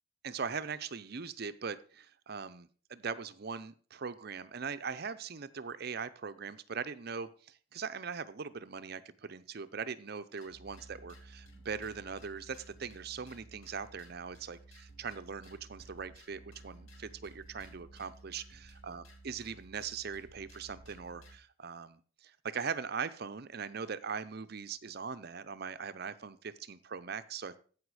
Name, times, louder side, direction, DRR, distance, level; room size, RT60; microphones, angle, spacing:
voice 1, 0.2-27.6, right 6 dB, 50° right, 13 dB, 0.6 m, -41 dB
sound 1, 10.4-21.4, right 2 dB, 85° left, 2.0 m, -55 dB
14.5 x 5.0 x 4.8 m, 0.42 s
head